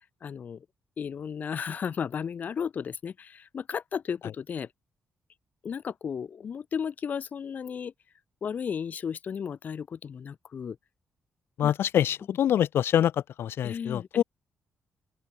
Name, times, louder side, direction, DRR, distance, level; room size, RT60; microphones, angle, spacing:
voice 1, 0.2-0.7 1.0-4.7 5.6-7.9 8.4-10.8 11.6-11.7 13.6-14.2, left 7 dB, 40° left, 0.7 m, -34 dB
voice 2, 11.6-13.1 13.4-14.2, left 10 dB, 70° left, 0.9 m, -25 dB
open air
wide cardioid pair, 160°, 4 cm